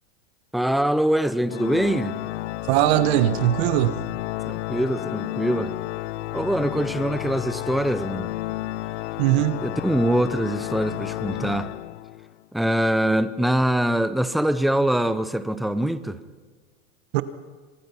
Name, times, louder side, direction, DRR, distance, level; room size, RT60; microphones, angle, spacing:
voice 1, 0.5-2.2 4.5-5.7 6.3-8.3 9.6-11.7 12.5-16.2, right 1 dB, ahead, 13 dB, 0.6 m, -23 dB
Organ, 1.5-12.3, left 17 dB, 65° left, 0.6 m, -32 dB
voice 2, 2.7-4.0 9.2-9.6 17.1-17.2, right 14 dB, 50° right, 12 dB, 1.3 m, -20 dB
25.5 x 20.5 x 5.9 m, 1.5 s
supercardioid pair, 140°, 39 cm